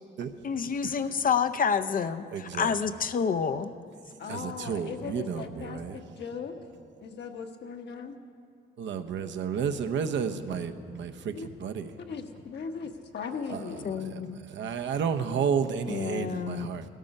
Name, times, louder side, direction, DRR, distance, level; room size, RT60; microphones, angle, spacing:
voice 1, 0.4-3.7 13.8-14.4 15.9-16.7, left 6 dB, 45° left, 0.6 m, -28 dB
voice 2, 2.3-2.7 4.3-6.0 8.8-11.3 11.6-11.9 13.5-13.8 14.1-14.2 14.5-16.8, right 7 dB, 70° right, 0.8 m, -31 dB
voice 3, 4.2-6.5 7.0-8.2 11.3-11.5 12.0-13.9, left 5 dB, 60° left, 1.3 m, -38 dB
17.0 x 13.0 x 5.4 m
cardioid pair, 90°, 20 cm